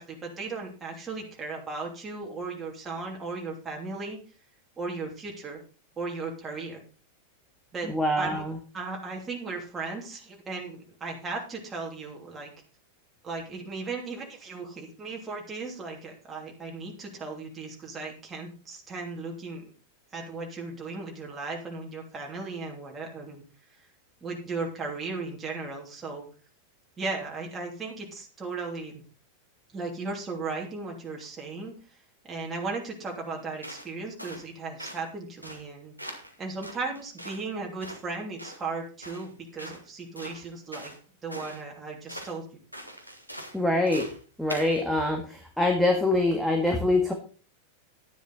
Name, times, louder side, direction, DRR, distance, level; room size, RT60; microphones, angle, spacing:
voice 1, 0.0-4.2 4.8-5.6 6.0-6.8 7.7-7.9 8.2-8.4 8.7-12.5 13.2-19.7 20.1-23.4 24.2-26.2 27.0-29.0 29.7-31.7 32.2-35.9 36.4-40.9 41.2-42.4, right 3 dB, 20° right, -1 dB, 3.0 m, -36 dB
voice 2, 7.9-8.5 43.5-44.1 44.4-47.1, left 2 dB, ahead, 2 dB, 1.8 m, -24 dB
sound 1, 33.6-33.9 34.2-34.5 34.8-35.1 35.4-35.7 36.0-36.3 36.6-37.4 37.8-38.0 38.4-38.6 39.0-39.3 39.6-39.8 40.2-41.0 41.3-41.6 42.1-42.3 42.7-43.6 43.9-44.2 44.5-44.8, equal, 90° left, 2.0 m, -42 dB
11.5 x 10.0 x 4.1 m, 0.36 s
figure-of-eight pair, 90°, 0 cm